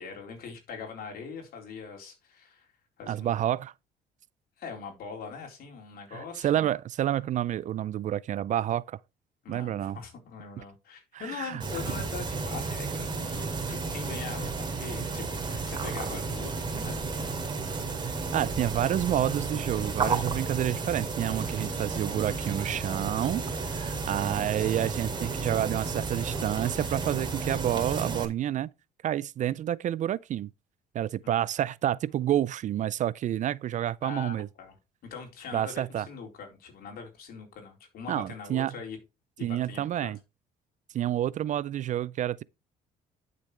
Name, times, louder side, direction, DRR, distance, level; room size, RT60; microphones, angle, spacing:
voice 1, 0.0-2.7 3.0-3.5 4.6-6.7 9.4-17.1 31.2-31.5 34.0-34.7 35.0-39.0 39.4-40.1, left 5 dB, 65° left, 4.2 m, -42 dB
voice 2, 3.1-3.7 6.1-9.0 9.5-10.0 11.1-11.6 18.0-28.7 29.0-30.5 30.9-34.5 35.5-36.1 38.1-38.7 39.4-40.2 40.9-42.4, right 11 dB, 45° right, 0.4 m, -29 dB
sound 1, 11.6-28.3, right 4 dB, 25° right, 2.4 m, -32 dB
11.5 x 6.8 x 3.3 m
cardioid pair, 110°, 17 cm